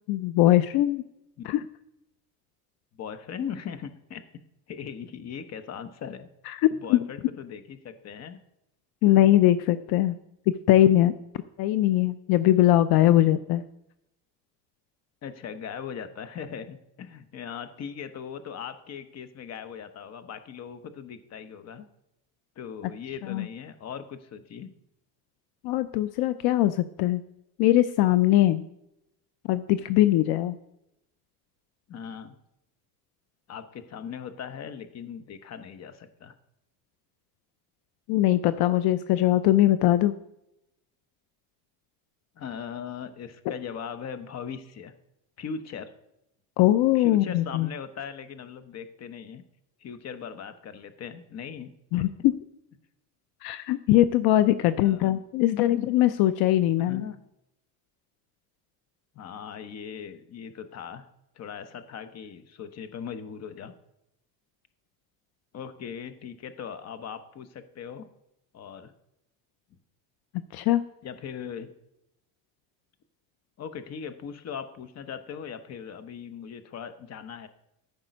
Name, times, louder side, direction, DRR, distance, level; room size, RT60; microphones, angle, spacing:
voice 1, 0.1-1.0 1.5-1.6 6.5-7.0 9.0-10.2 10.5-11.1 11.6-13.6 23.3-23.5 25.6-27.2 27.6-28.7 29.5-30.6 38.1-40.1 46.6-47.7 51.9-52.3 53.4-57.1 70.5-70.8, left 14 dB, 70° left, 13 dB, 0.6 m, -21 dB
voice 2, 2.9-4.2 4.7-6.3 6.8-8.4 9.1-9.2 15.2-21.9 22.6-24.7 31.9-32.4 33.5-36.3 42.4-44.9 45.4-45.9 46.9-49.4 49.8-51.7 52.0-52.1 54.7-55.1 56.8-57.2 59.1-61.0 61.3-63.7 65.5-68.1 68.5-68.9 71.0-71.7 73.6-77.5, left 7 dB, 40° left, 11 dB, 0.9 m, -39 dB
13.5 x 5.3 x 5.2 m, 0.84 s
cardioid pair, 125°, 39 cm